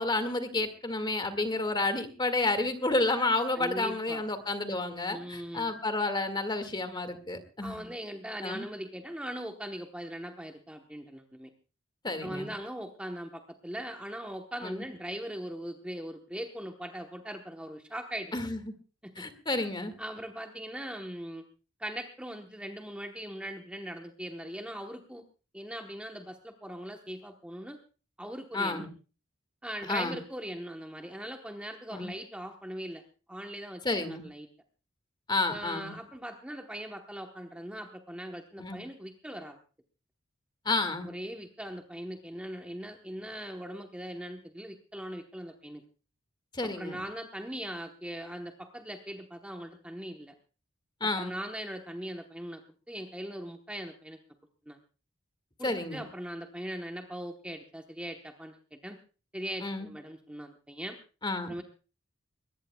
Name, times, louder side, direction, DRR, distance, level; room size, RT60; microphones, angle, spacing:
voice 1, 0.0-7.9 8.4-8.7 12.0-12.5 14.6-14.8 18.3-18.7 19.2-19.9 28.5-28.9 29.9-30.2 31.9-32.1 33.8-34.2 35.3-35.9 38.6-38.8 40.7-41.1 46.5-47.0 51.0-51.4 55.6-56.0 59.6-59.9 61.2-61.6, left 2 dB, 20° left, 9 dB, 1.9 m, -30 dB
voice 2, 3.5-4.2 5.1-5.7 7.6-11.5 12.2-18.3 19.0-19.2 20.0-21.4 21.8-25.2 25.5-27.8 28.2-28.9 29.6-33.0 33.3-34.5 35.5-39.6 41.1-45.8 46.6-50.3 51.0-52.6 52.9-54.2 54.7-54.8 55.6-59.0 59.3-61.0 61.5-61.6, equal, 5° right, 3 dB, 1.0 m, -40 dB
22.5 x 19.0 x 2.3 m, 0.35 s
head